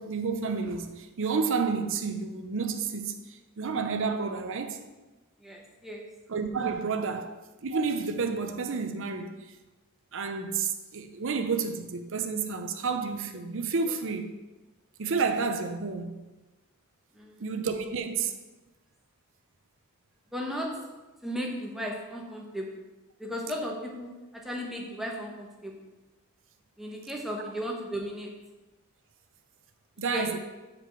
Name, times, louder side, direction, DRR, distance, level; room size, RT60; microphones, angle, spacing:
voice 1, 0.0-3.2 3.6-4.8 6.3-9.3 10.1-14.3 15.0-16.2 17.4-18.3 30.0-30.4, right 5 dB, 60° right, 0.7 m, -30 dB
voice 2, 5.4-6.1 7.1-7.2 17.1-17.6 20.3-20.9 21.2-22.8 23.2-25.9 26.8-28.4 30.1-30.4, equal, ahead, 1.0 m, -36 dB
6.8 x 5.0 x 6.2 m
head